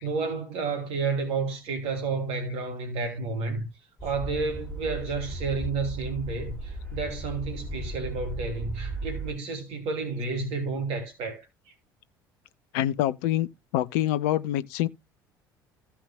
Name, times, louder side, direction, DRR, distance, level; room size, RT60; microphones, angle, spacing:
voice 1, 0.0-3.7 4.0-11.4, right 4 dB, 55° right, 2.7 m, -31 dB
sound 1, 4.0-9.3, right 2 dB, 10° left, 4.7 m, -36 dB
voice 2, 12.7-13.5 13.7-14.9, left 13 dB, 60° left, 0.6 m, -25 dB
16.0 x 5.6 x 2.3 m
figure-of-eight pair, 60°, 12 cm